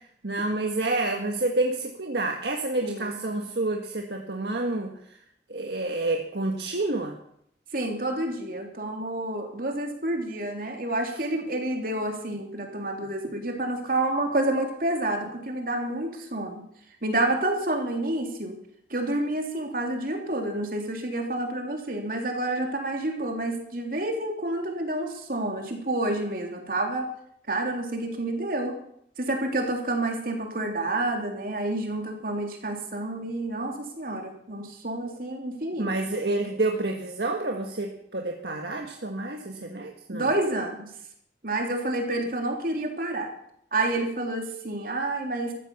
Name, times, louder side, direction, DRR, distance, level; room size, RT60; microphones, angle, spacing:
voice 1, 0.0-5.2 5.5-7.1 35.8-40.3, right 2 dB, 70° right, 2 dB, 1.6 m, -29 dB
voice 2, 2.8-3.2 7.7-16.6 17.0-18.6 18.9-27.1 27.5-28.7 29.2-35.9 40.1-40.9 41.4-43.3 43.7-45.5, right 2 dB, 50° right, 2 dB, 3.3 m, -29 dB
14.0 x 13.0 x 7.2 m, 0.71 s
head